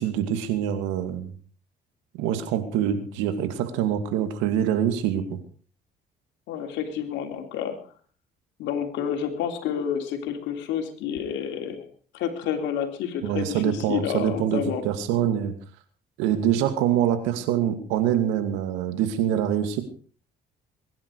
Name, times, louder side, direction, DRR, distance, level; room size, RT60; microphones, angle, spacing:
voice 1, 0.0-1.3 2.2-5.4 13.2-15.5 16.2-19.8, right 10 dB, 90° right, 9 dB, 2.4 m, -25 dB
voice 2, 6.5-7.8 8.6-11.9 12.1-14.8, left 8 dB, 80° left, 5 dB, 3.4 m, -29 dB
22.0 x 11.0 x 4.8 m, 0.41 s
supercardioid pair, 70°, 19 cm